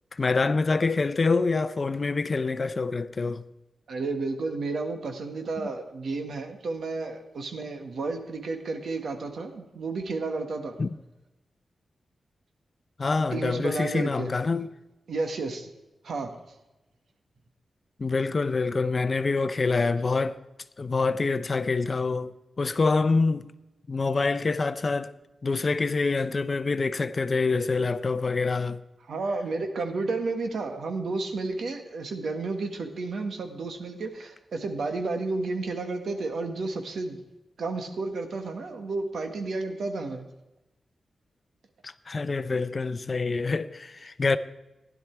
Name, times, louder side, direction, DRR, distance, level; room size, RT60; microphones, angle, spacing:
voice 1, 0.1-3.4 10.8-10.9 13.0-14.7 18.0-20.4 20.8-22.3 22.6-23.5 23.9-25.1 25.4-28.8 41.8-44.4, left 4 dB, 35° left, 0.5 m, -26 dB
voice 2, 3.9-10.8 13.3-14.4 15.1-15.7 16.0-16.3 29.1-37.2 37.6-40.3, right 3 dB, 75° right, 1.6 m, -32 dB
15.5 x 11.0 x 4.6 m
wide cardioid pair, 130°, 0 cm